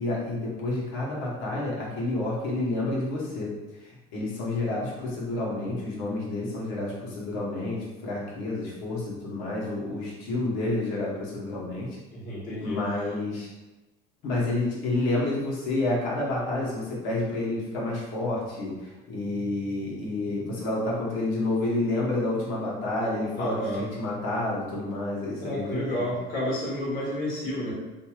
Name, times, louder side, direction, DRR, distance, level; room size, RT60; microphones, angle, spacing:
voice 1, 0.0-3.5 3.8-12.0 12.6-13.5 14.2-26.1, left 2 dB, 65° left, -4 dB, 1.0 m, -29 dB
voice 2, 12.1-12.8 23.4-23.8 25.4-27.7, left 1 dB, 40° left, -6 dB, 1.2 m, -30 dB
3.0 x 2.6 x 2.3 m, 1.1 s
cardioid pair, 170°, 21 cm